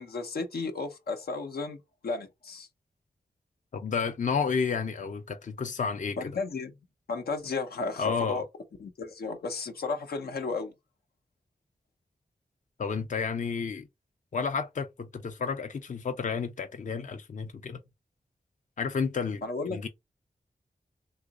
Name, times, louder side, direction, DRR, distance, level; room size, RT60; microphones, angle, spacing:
voice 1, 0.0-2.7 6.2-6.7 7.1-8.4 8.8-10.7 19.4-19.9, left 4 dB, 85° left, 0.8 m, -34 dB
voice 2, 3.7-6.2 8.0-8.4 12.8-13.9 14.3-17.8 18.8-19.4 19.7-19.9, left 5 dB, 55° left, 0.5 m, -31 dB
3.0 x 2.5 x 3.5 m
cardioid pair, 45°, 16 cm